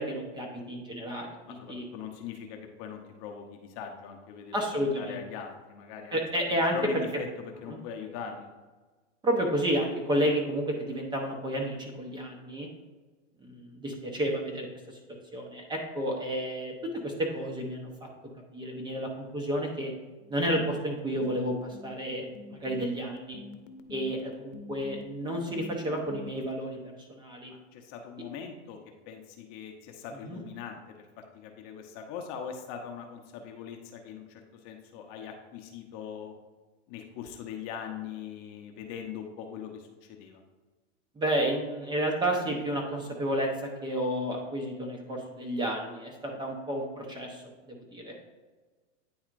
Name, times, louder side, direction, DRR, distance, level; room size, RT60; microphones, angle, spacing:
voice 1, 0.0-1.8 4.5-5.2 6.1-6.7 7.7-7.8 9.2-12.7 13.4-14.7 15.3-16.7 17.0-17.9 18.5-19.9 20.3-22.3 22.5-23.4 23.9-26.8 27.1-27.5 30.3-30.4 41.2-48.1, equal, 10° right, 0 dB, 0.8 m, -31 dB
voice 2, 1.5-4.5 4.9-6.2 6.5-7.3 7.6-8.5 27.5-28.8 29.1-36.3 36.9-40.4 46.3-46.4, left 7 dB, 40° left, 4 dB, 0.8 m, -41 dB
sound 1, 20.2-26.5, left 3 dB, 75° left, 0.8 m, -46 dB
9.5 x 4.2 x 2.5 m, 1.3 s
hypercardioid pair, 135°, 37 cm